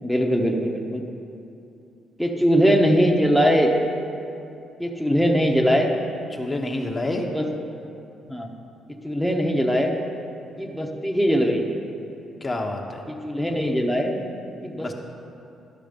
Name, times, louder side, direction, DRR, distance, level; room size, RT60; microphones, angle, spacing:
voice 1, 0.0-1.0 2.2-3.7 4.8-5.9 7.2-7.5 8.3-8.5 9.0-10.0 10.6-11.6 13.1-14.2 14.6-14.9, equal, ahead, 1 dB, 0.9 m, -21 dB
voice 2, 6.3-7.2 12.4-13.0 14.8-14.9, left 2 dB, 25° left, 2 dB, 0.9 m, -28 dB
12.0 x 6.0 x 5.2 m, 2.7 s
cardioid pair, 90°, 0 cm